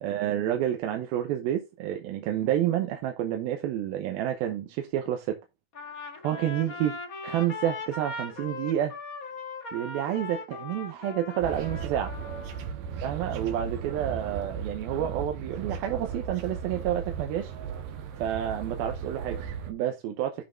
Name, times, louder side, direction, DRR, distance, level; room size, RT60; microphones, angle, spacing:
voice 1, 0.0-5.4 6.2-7.0 7.2-9.0 9.7-12.1 13.0-17.5 18.2-20.4, right 11 dB, 90° right, 2.7 m, -29 dB
Trumpet, 5.7-12.7, left 3 dB, 40° left, 1.2 m, -39 dB
sound 1, 11.4-19.7, right 6 dB, 70° right, 2.6 m, -36 dB
15.5 x 6.3 x 2.5 m
omnidirectional pair, 4.2 m